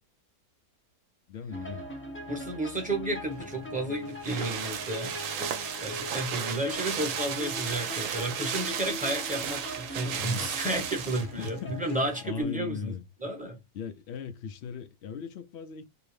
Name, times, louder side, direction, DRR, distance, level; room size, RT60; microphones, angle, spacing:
voice 1, 1.3-1.9 10.2-13.0 13.7-15.8, left 6 dB, 65° left, 0.6 m, -39 dB
sound 1, 1.5-12.4, left 1 dB, 20° left, 0.3 m, -41 dB
voice 2, 2.3-5.1 5.8-12.9 13.2-13.6, right 1 dB, 5° right, 0.9 m, -32 dB
sound 2, 3.4-11.6 11.9-12.0, right 8 dB, 65° right, 0.9 m, -34 dB
2.8 x 2.7 x 3.2 m
omnidirectional pair, 1.6 m